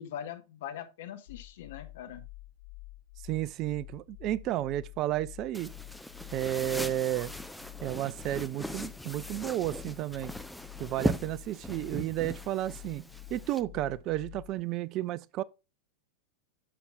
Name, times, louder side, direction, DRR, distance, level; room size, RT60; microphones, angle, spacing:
voice 1, 0.0-2.2, left 10 dB, 55° left, 1.5 m, -41 dB
sound 1, 1.3-14.6, left 20 dB, 70° left, 1.9 m, -49 dB
voice 2, 3.2-5.7 6.3-7.3 7.8-10.3 10.8-13.0 13.3-15.4, right 14 dB, 35° right, 0.4 m, -32 dB
sound 2, 5.5-13.6, equal, ahead, 0.6 m, -39 dB
9.7 x 7.0 x 2.4 m
figure-of-eight pair, 90°, 0 cm